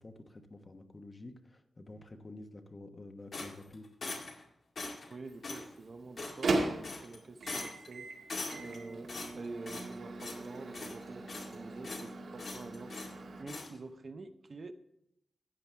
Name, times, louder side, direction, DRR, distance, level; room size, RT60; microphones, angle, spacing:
voice 1, 0.0-3.9, left 2 dB, 30° left, 6 dB, 1.1 m, -49 dB
sound 1, 3.3-4.4 4.8-5.1 5.4-5.7 6.2-6.6 6.8-7.2 7.5-7.9 8.3-8.8 9.1-9.9 10.2-10.5 10.7-11.6 11.8-12.1 12.4-13.1 13.5-13.7, left 3 dB, 60° left, 2.1 m, -42 dB
voice 2, 5.1-8.1 8.6-14.7, right 3 dB, 45° right, 8 dB, 0.7 m, -47 dB
Microwave oven, 5.2-13.4, right 2 dB, 80° right, 2.1 m, -39 dB
13.5 x 8.8 x 3.4 m, 0.82 s
wide cardioid pair, 115°, 0 cm